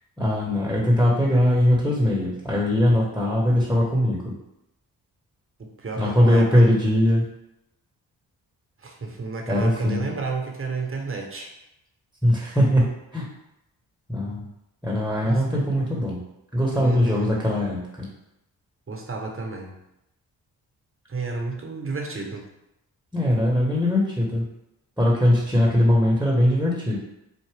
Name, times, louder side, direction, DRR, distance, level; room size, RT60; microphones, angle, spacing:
voice 1, 0.2-4.3 6.0-7.3 9.5-10.1 12.2-13.3 14.1-14.5 14.8-16.2 16.5-18.1 23.1-24.5 25.0-27.0, left 1 dB, 5° right, -3 dB, 1.1 m, -21 dB
voice 2, 5.6-6.7 8.8-11.5 15.2-15.4 16.8-17.3 18.9-19.7 21.1-22.4, right 3 dB, 30° right, 2 dB, 1.0 m, -31 dB
4.8 x 2.5 x 3.3 m, 0.87 s
supercardioid pair, 45°, 45 cm